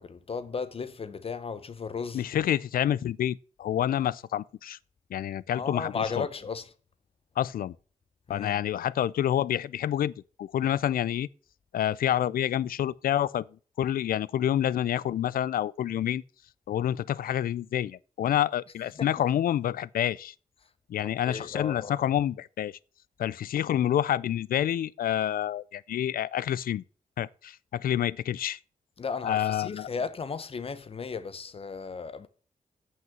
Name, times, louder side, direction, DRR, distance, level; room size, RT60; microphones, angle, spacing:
voice 1, 0.0-2.2 5.5-6.7 8.3-8.6 19.0-19.1 21.0-22.1 29.0-32.3, left 5 dB, 40° left, 0.7 m, -35 dB
voice 2, 2.1-4.8 5.1-6.3 7.4-7.7 8.3-10.1 10.4-11.3 11.7-13.5 13.8-16.2 16.7-20.3 20.9-22.7 23.2-26.8 27.2-28.6 29.2-29.9, left 11 dB, 80° left, 0.4 m, -28 dB
8.0 x 6.1 x 7.3 m
wide cardioid pair, 140°, 15 cm